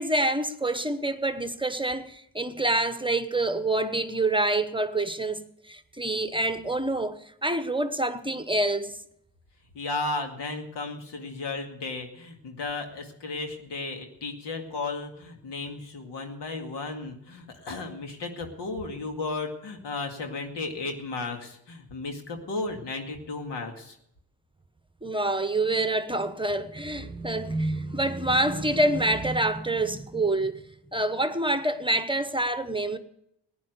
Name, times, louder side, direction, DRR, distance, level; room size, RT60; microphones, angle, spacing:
voice 1, 0.0-9.0 25.0-33.0, right 1 dB, 10° right, 1.0 m, -27 dB
voice 2, 9.7-24.0, left 3 dB, 80° left, 2.2 m, -34 dB
15.5 x 10.0 x 6.7 m
supercardioid pair, 55°, 41 cm